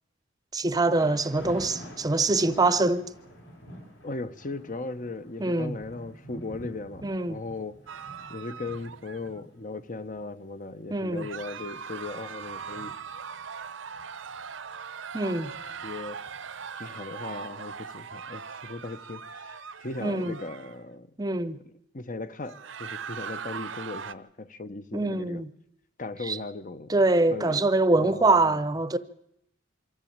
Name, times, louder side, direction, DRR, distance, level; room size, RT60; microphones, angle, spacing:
voice 1, 0.5-3.0 5.4-5.7 7.0-7.4 10.9-11.2 15.1-15.5 20.0-20.3 21.2-21.6 24.9-25.5 26.2-26.4 26.9-29.0, right 2 dB, 20° right, 0.7 m, -24 dB
Thunder / Rain, 0.9-17.0, equal, 70° left, 5.7 m, -49 dB
voice 2, 4.0-7.8 8.3-13.0 15.8-16.2 16.7-21.1 21.9-25.4 26.0-27.0 27.3-27.7 28.0-28.6, left 3 dB, 45° left, 0.9 m, -37 dB
sound 1, 7.9-9.4 11.2-20.8 22.4-24.1, right 6 dB, 80° right, 0.9 m, -40 dB
23.5 x 14.0 x 8.7 m
head